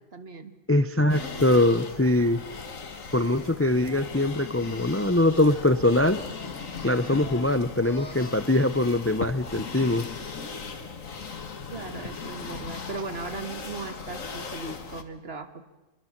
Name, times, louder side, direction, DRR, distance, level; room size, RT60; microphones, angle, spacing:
voice 1, 0.1-0.5 11.7-15.7, right 4 dB, 50° right, 9 dB, 1.9 m, -38 dB
voice 2, 0.7-2.4 3.1-6.2 6.8-10.1, left 1 dB, 15° left, 13 dB, 0.6 m, -22 dB
sound 1, 1.1-15.0, left 5 dB, 80° left, 2.1 m, -38 dB
sound 2, 5.5-5.7 6.0-8.6, left 4 dB, 60° left, 2.1 m, -46 dB
25.5 x 23.5 x 7.4 m, 1.1 s
omnidirectional pair, 1.4 m